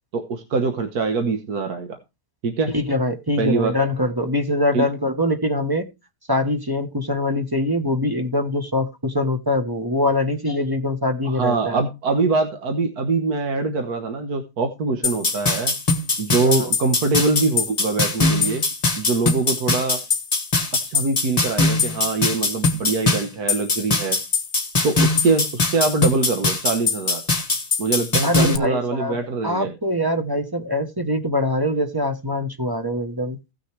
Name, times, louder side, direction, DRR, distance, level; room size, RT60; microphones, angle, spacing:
voice 1, 0.1-2.0 2.4-2.7 3.4-3.7 4.7-4.9 11.3-15.7 16.2-18.6 19.0-20.0 20.9-24.2 24.8-27.2 27.8-29.7, right 3 dB, 70° right, 1.6 m, -23 dB
voice 2, 2.7-5.9 6.3-11.8 16.4-16.7 28.2-33.4, left 1 dB, 15° right, 0.9 m, -23 dB
sound 1, 15.0-28.6, left 3 dB, 25° left, 1.3 m, -21 dB
16.5 x 6.3 x 3.3 m
omnidirectional pair, 1.7 m